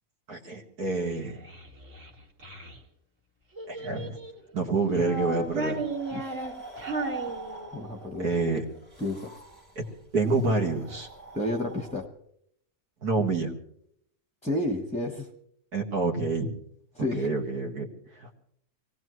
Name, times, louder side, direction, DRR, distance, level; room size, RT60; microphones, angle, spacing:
voice 1, 0.3-1.4 3.7-4.2 4.5-5.8 8.2-8.6 9.8-9.9 10.1-11.1 13.0-13.5 15.7-16.5 17.0-17.9 18.2-18.3, right 3 dB, 80° right, 0 dB, 2.4 m, -27 dB
Child speech kid speaking, 1.1-2.8 3.5-4.4 4.9-8.0, right 2 dB, 50° right, 2.3 m, -35 dB
sound 1, 4.9-12.1, right 4 dB, 30° right, 2.3 m, -44 dB
voice 2, 6.1-6.5 7.7-8.3 9.0-9.3 11.3-12.1 14.4-15.3 16.9-17.3, left 1 dB, 5° left, 2 dB, 0.9 m, -31 dB
24.5 x 18.0 x 3.1 m, 0.70 s
omnidirectional pair, 1.6 m